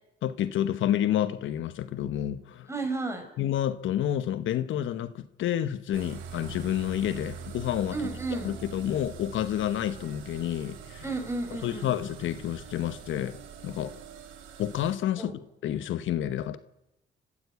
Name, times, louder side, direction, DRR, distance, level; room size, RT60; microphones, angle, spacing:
voice 1, 0.2-2.7 3.4-8.0 8.4-11.0 11.6-13.4 13.6-13.9 14.6-16.6, left 11 dB, 80° left, 1.1 m, -29 dB
voice 2, 2.7-3.3 7.9-8.5 11.0-11.9 15.2-15.3, right 3 dB, 15° right, 6.2 m, -32 dB
sound 1, 5.9-14.9, right 7 dB, 85° right, 3.2 m, -43 dB
29.5 x 15.0 x 8.2 m
cardioid pair, 90°, 20 cm